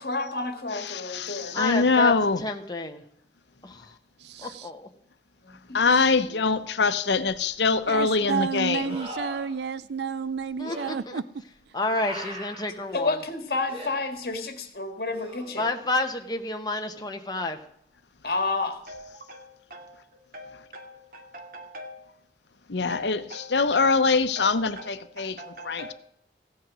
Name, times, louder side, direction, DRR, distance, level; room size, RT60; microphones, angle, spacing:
voice 1, 0.0-1.6 5.4-5.5 12.9-15.7 18.2-18.8, left 3 dB, 60° left, 1.9 m, -30 dB
voice 2, 0.7-2.4 5.7-9.0 20.5-20.6 22.7-25.9, left 4 dB, 85° left, 0.8 m, -24 dB
voice 3, 1.5-2.1 2.4-3.0 3.6-3.8 4.4-4.8 10.6-11.2 11.7-13.2 15.6-17.6, left 2 dB, 20° left, 1.1 m, -30 dB
sound 1, 7.3-7.4 8.9-9.5 10.6-10.9 12.0-12.7 13.7-13.9 15.1-15.8 18.9-19.0, right 1 dB, 30° right, 5.3 m, -39 dB
voice 4, 7.9-11.2, right 6 dB, 75° right, 0.4 m, -30 dB
voice 5, 18.9-22.1 22.9-24.0 24.4-25.9, equal, 50° right, 2.5 m, -43 dB
15.5 x 8.3 x 6.2 m
head